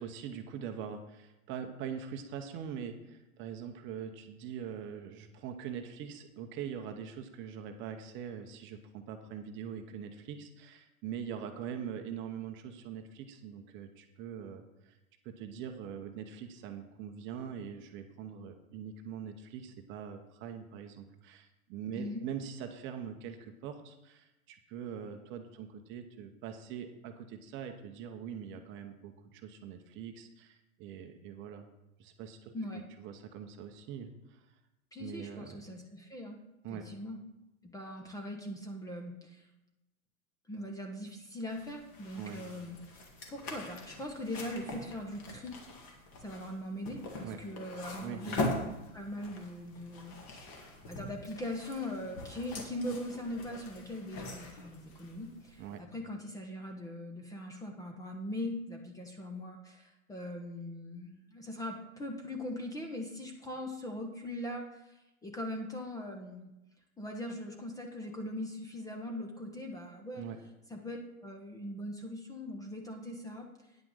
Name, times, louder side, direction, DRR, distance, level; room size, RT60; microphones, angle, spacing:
voice 1, 0.0-15.0 15.2-31.7 32.0-32.5 33.0-34.5 35.0-35.6 36.6-36.9 42.2-42.4 47.2-47.4 48.0-48.4 55.6-55.8 70.2-70.4, right 8 dB, 25° right, 6 dB, 0.8 m, -43 dB
voice 2, 21.9-22.2 32.5-32.8 34.9-36.4 36.7-37.2 37.6-39.5 40.5-45.6 46.2-50.6 50.9-66.5 67.0-70.3 70.7-71.0 71.2-73.5, left 1 dB, 10° left, 2 dB, 0.8 m, -41 dB
sound 1, 41.5-55.8, left 2 dB, 35° left, 2.1 m, -42 dB
9.6 x 5.9 x 6.3 m, 0.96 s
hypercardioid pair, 125°, 44 cm